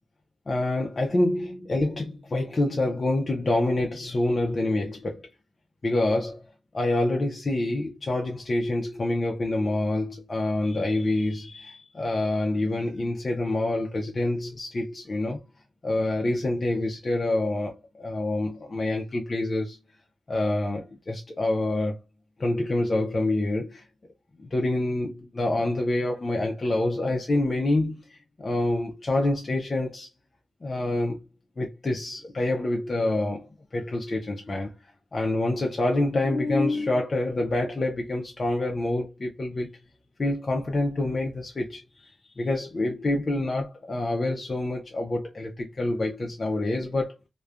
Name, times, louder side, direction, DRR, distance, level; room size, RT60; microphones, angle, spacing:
voice 1, 0.5-5.2 5.8-6.4 6.7-15.4 15.8-19.8 20.3-22.0 22.4-23.8 24.4-30.1 30.6-31.2 31.6-34.7 35.1-39.7 40.2-42.1 42.4-47.2, left 2 dB, 35° left, 0.5 m, -27 dB
3.0 x 2.1 x 2.3 m
wide cardioid pair, 105°, 0 cm